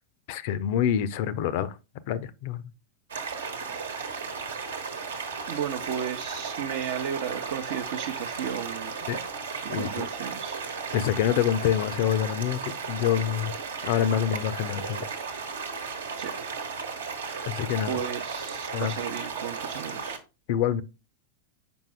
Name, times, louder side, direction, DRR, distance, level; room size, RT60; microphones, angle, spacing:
voice 1, 0.3-1.7 2.1-2.6 9.1-9.2 9.7-10.1 10.9-13.5 13.8-15.0 17.5-18.0 18.7-18.9 20.5-20.8, left 10 dB, 50° left, 0.6 m, -26 dB
sound 1, 3.1-20.2, right 5 dB, 70° right, 1.1 m, -35 dB
voice 2, 5.5-8.9 9.6-10.6 16.2-16.3 17.3-17.5 17.9-20.2, right 8 dB, 50° right, 0.7 m, -34 dB
7.0 x 5.3 x 3.4 m
figure-of-eight pair, 90°, 0 cm